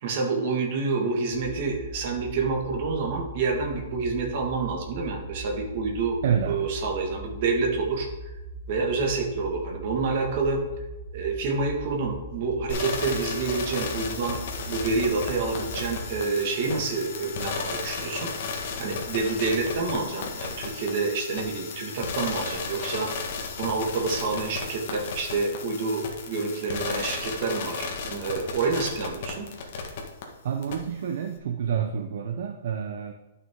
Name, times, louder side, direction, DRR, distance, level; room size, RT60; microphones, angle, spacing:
voice 1, 0.0-8.1 8.7-10.6 11.1-14.4 14.7-18.3 18.8-23.1 23.6-29.5, right 4 dB, 40° right, 1 dB, 1.8 m, -28 dB
sound 1, 1.3-16.1, right 2 dB, 75° right, 2.5 m, -40 dB
voice 2, 6.2-6.7 30.4-33.1, right 8 dB, 55° right, 6 dB, 0.6 m, -28 dB
sound 2, 12.7-30.2 30.6-30.7, left 4 dB, 45° left, 1.5 m, -34 dB
11.5 x 6.1 x 3.7 m, 1.1 s
hypercardioid pair, 170°, 0 cm